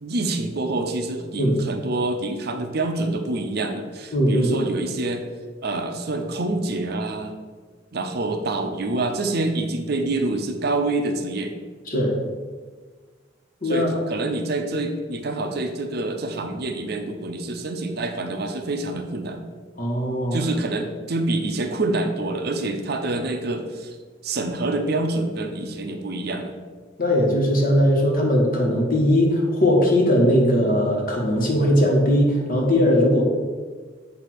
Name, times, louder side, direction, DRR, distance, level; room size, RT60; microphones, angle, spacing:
voice 1, 0.0-5.2 5.6-7.3 7.9-11.6 13.6-19.4 20.3-24.0 24.2-26.6, right 2 dB, 55° right, 4 dB, 0.7 m, -26 dB
voice 2, 4.1-4.5 11.9-12.1 13.6-13.9 19.8-20.4 27.0-33.2, equal, 50° left, 0 dB, 1.3 m, -19 dB
8.2 x 2.7 x 6.1 m, 1.4 s
head